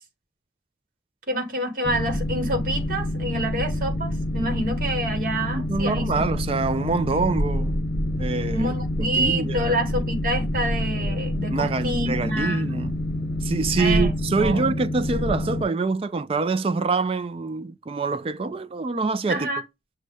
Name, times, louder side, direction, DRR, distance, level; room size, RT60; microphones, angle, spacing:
voice 1, 1.3-6.2 8.5-12.8 13.8-14.1 14.4-14.7 19.3-19.6, right 1 dB, 50° right, 1.2 m, -27 dB
Boat Water vehicle, 1.8-15.6, left 1 dB, 50° left, 0.8 m, -27 dB
voice 2, 5.5-7.8 8.2-8.7 9.2-9.8 11.5-13.0 13.4-19.5, right 3 dB, 30° right, 0.3 m, -25 dB
6.4 x 2.2 x 3.3 m
head